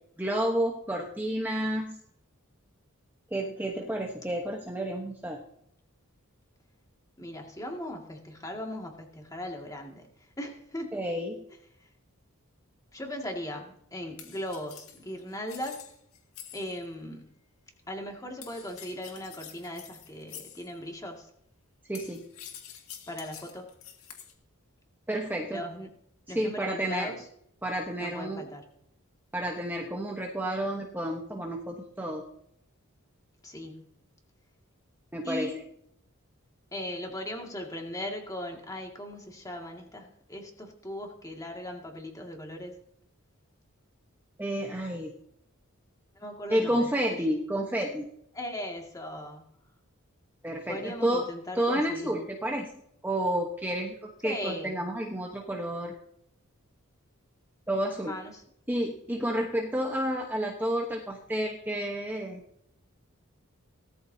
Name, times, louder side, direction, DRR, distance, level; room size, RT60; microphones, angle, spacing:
voice 1, 0.2-2.0 3.3-5.4 10.9-11.4 21.9-22.2 25.1-25.6 26.3-27.1 27.6-28.4 29.3-32.2 35.1-35.5 44.4-45.1 46.5-48.1 50.4-51.3 51.5-52.7 53.0-55.9 57.7-58.1 58.7-62.4, right 1 dB, 10° right, 0 dB, 1.1 m, -30 dB
voice 2, 7.2-10.9 11.8-11.9 12.9-15.8 16.5-17.4 17.9-21.3 23.1-23.7 25.5-25.9 26.3-27.3 28.0-28.6 33.4-33.9 35.2-35.6 36.7-42.8 46.1-47.2 48.3-49.5 50.7-52.1 54.2-54.8 58.1-58.4, left 1 dB, 15° left, 2 dB, 2.2 m, -38 dB
sound 1, 14.2-16.8 18.4-20.7 21.9-24.3, left 9 dB, 80° left, 2.1 m, -47 dB
18.0 x 13.5 x 2.8 m, 0.72 s
head